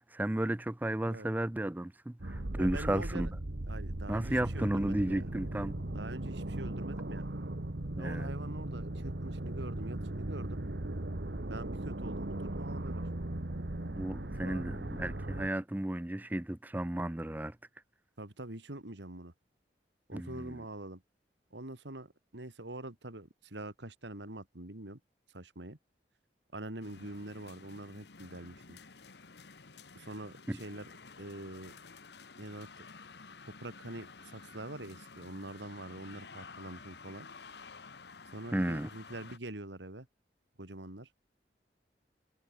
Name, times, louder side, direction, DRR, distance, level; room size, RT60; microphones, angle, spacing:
voice 1, 0.0-3.3 4.1-5.8 7.9-8.3 13.9-17.5 20.1-20.6 30.5-30.6 38.5-38.9, right 1 dB, 10° right, 0.4 m, -33 dB
sound 1, 2.2-15.5, right 1 dB, 70° right, 1.5 m, -38 dB
voice 2, 2.5-3.3 3.6-5.3 5.9-7.3 8.0-10.6 11.5-13.1 14.4-14.7 18.2-19.3 20.1-21.0 21.5-25.0 25.3-25.8 26.5-28.8 29.9-31.7 32.4-32.9 33.6-37.3 38.3-40.1 40.6-41.1, right 2 dB, 85° right, 2.7 m, -44 dB
sound 2, 26.8-39.4, left 4 dB, 70° left, 1.3 m, -52 dB
head